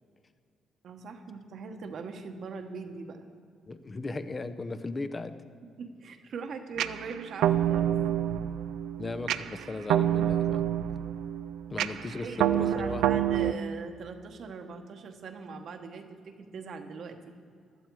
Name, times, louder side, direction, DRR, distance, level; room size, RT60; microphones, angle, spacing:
voice 1, 0.8-3.3 5.8-8.0 12.2-17.4, right 5 dB, 65° right, 5 dB, 1.2 m, -41 dB
voice 2, 3.7-5.3 9.0-10.8 11.7-13.2, left 3 dB, 30° left, 11 dB, 0.7 m, -37 dB
sound 1, 6.8-13.5, right 11 dB, 90° right, 0.4 m, -27 dB
15.0 x 12.0 x 4.7 m, 2.1 s
cardioid pair, 90°, 0 cm